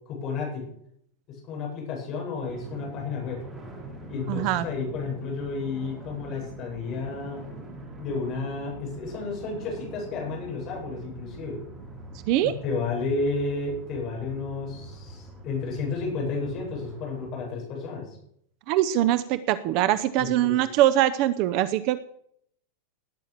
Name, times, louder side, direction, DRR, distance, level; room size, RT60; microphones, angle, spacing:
voice 1, 0.1-0.6 1.3-3.4 4.1-7.4 8.0-11.6 12.4-18.2 20.2-20.5, left 4 dB, 25° left, -2 dB, 7.6 m, -32 dB
sound 1, 2.5-17.3, right 2 dB, 10° right, 3.4 m, -43 dB
voice 2, 4.3-4.7 12.3-12.5 18.7-22.0, right 13 dB, 35° right, 14 dB, 0.6 m, -23 dB
19.0 x 9.4 x 6.7 m, 0.70 s
supercardioid pair, 175°, 0 cm